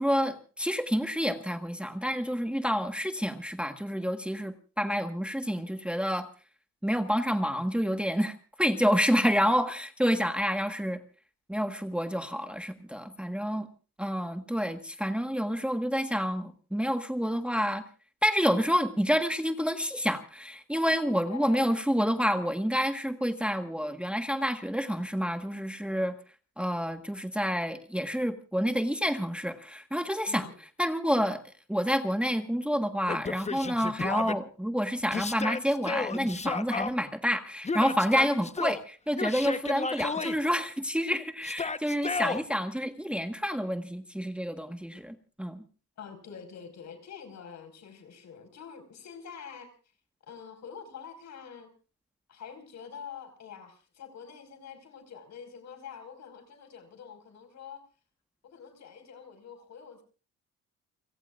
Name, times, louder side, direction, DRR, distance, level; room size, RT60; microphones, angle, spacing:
voice 1, 0.0-6.3 6.8-11.0 11.5-13.7 14.0-17.8 18.2-26.2 26.6-30.5 30.8-31.4 31.7-45.6, equal, 5° right, 1.4 m, -28 dB
voice 2, 21.3-21.7 30.3-30.6 46.0-49.7 50.3-51.7 52.3-57.8 58.4-60.0, left 7 dB, 65° left, 5.2 m, -46 dB
Yell, 33.1-34.4 35.1-36.9 37.6-38.8 39.1-40.4 41.4-42.4, left 4 dB, 20° left, 1.0 m, -32 dB
30.0 x 17.5 x 2.5 m
cardioid pair, 90°, 30 cm